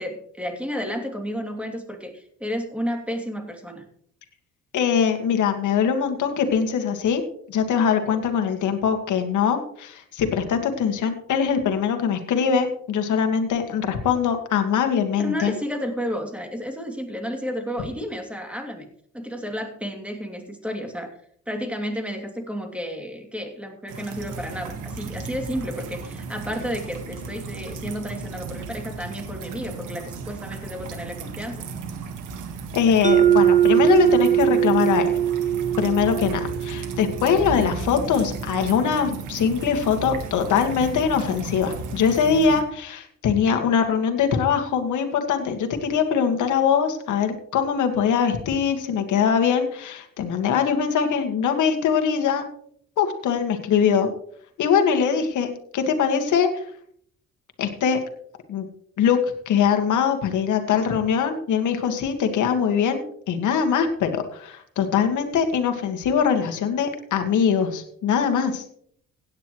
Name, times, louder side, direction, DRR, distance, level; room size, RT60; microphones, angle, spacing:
voice 1, 0.0-3.8 15.2-18.9 19.1-21.2 21.5-31.7, equal, 5° right, 3 dB, 2.8 m, -32 dB
voice 2, 4.7-7.2 7.5-15.5 32.7-35.1 35.8-52.5 53.0-54.1 54.6-56.6 57.6-58.0 58.5-58.7 59.0-59.2 59.5-68.6, left 7 dB, 75° left, 6 dB, 2.0 m, -22 dB
sound 1, 23.9-42.6, right 4 dB, 85° right, 1.8 m, -35 dB
Mallet percussion, 33.0-37.6, right 10 dB, 25° right, 1.7 m, -20 dB
16.5 x 9.7 x 3.2 m, 0.63 s
cardioid pair, 90°, 30 cm